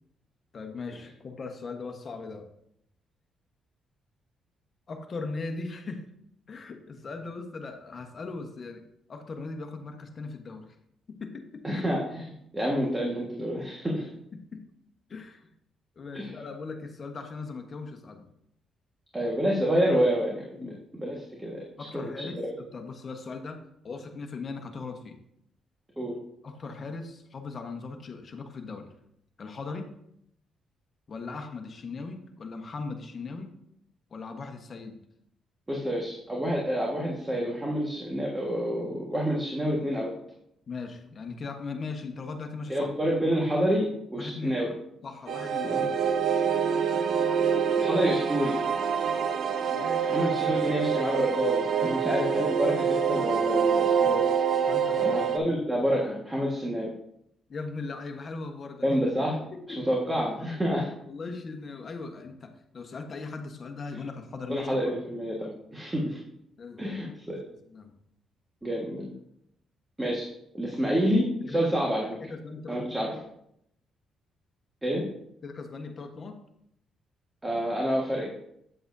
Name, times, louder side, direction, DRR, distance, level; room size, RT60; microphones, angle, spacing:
voice 1, 0.5-2.5 4.9-6.0 6.5-8.8 9.1-10.7 11.1-11.8 14.3-14.6 15.1-15.5 16.0-18.3 20.5-20.8 21.8-25.2 26.4-28.9 29.4-29.9 31.1-33.5 34.1-35.0 40.7-42.9 44.1-44.6 45.0-45.9 49.7-50.3 51.8-52.1 54.7-55.6 57.5-59.0 59.5-60.0 61.1-64.9 66.6-67.1 67.7-67.9 70.8-70.9 71.5-71.7 72.2-73.0 75.4-76.4, left 4 dB, 45° left, 5 dB, 1.2 m, -39 dB
voice 2, 11.6-14.1 16.1-16.3 19.1-21.6 21.9-22.1 26.0-26.1 35.7-40.1 42.7-44.7 45.6-45.8 47.8-48.6 50.0-54.2 55.0-56.9 58.8-59.4 59.9-60.9 64.5-66.2 66.8-67.4 68.6-69.1 70.0-70.3 70.5-72.2 72.7-73.1 74.8-75.0 77.4-78.3, equal, 15° right, -2 dB, 1.6 m, -28 dB
sound 1, 45.3-55.4, right 7 dB, 65° right, 0.6 m, -26 dB
8.7 x 7.7 x 2.7 m, 0.75 s
cardioid pair, 90°, 0 cm